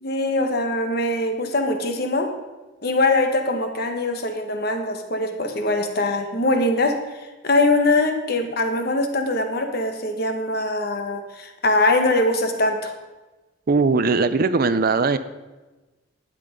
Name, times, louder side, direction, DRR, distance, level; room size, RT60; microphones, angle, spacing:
voice 1, 0.0-2.3 2.8-12.9, left 2 dB, 50° left, 5 dB, 1.3 m, -22 dB
voice 2, 13.7-15.2, right 4 dB, 45° right, 13 dB, 0.5 m, -19 dB
11.0 x 7.8 x 5.1 m, 1.2 s
head